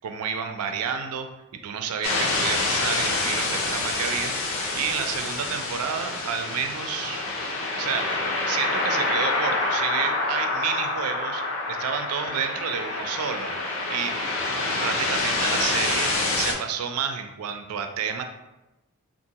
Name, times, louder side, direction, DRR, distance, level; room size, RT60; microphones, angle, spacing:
voice 1, 0.0-4.3 4.7-7.2 7.8-8.2 8.5-11.4 11.7-14.2 14.8-18.2, right 7 dB, 80° right, 7 dB, 0.4 m, -30 dB
sound 1, 2.0-16.5, left 2 dB, 60° left, 0.5 m, -27 dB
3.7 x 2.4 x 2.7 m, 1.0 s
head